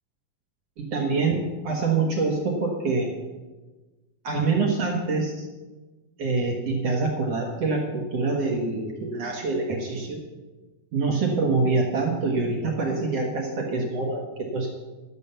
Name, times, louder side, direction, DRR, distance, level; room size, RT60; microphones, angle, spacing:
voice 1, 0.8-3.1 4.2-5.5 6.2-10.2 10.9-14.7, right 3 dB, 65° right, 1 dB, 1.6 m, -25 dB
12.0 x 7.2 x 6.8 m, 1.2 s
omnidirectional pair, 4.5 m